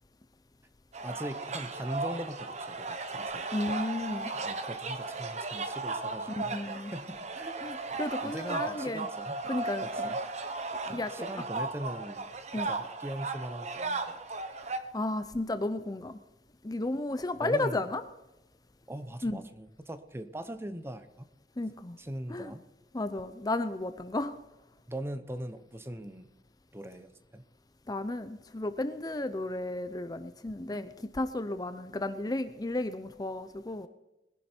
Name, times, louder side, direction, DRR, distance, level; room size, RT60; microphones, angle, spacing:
sound 1, 0.9-14.8, right 3 dB, 40° right, 1.2 m, -36 dB
voice 1, 1.0-3.5 4.3-6.5 6.9-7.6 8.2-9.4 10.0-10.2 10.9-12.3 12.7-14.2 17.4-17.8 18.9-21.3 22.0-22.6 24.9-26.3 26.7-27.4 30.7-30.9, right 1 dB, 15° right, 11 dB, 0.8 m, -40 dB
voice 2, 3.5-4.3 6.3-6.9 7.6-9.1 9.5-10.1 10.9-11.3 12.5-12.7 14.9-16.2 16.6-18.0 19.2-19.4 21.6-22.0 22.3-22.5 22.9-24.4 27.9-33.9, left 2 dB, 20° left, 11 dB, 0.6 m, -33 dB
20.0 x 11.0 x 4.4 m, 1.0 s
head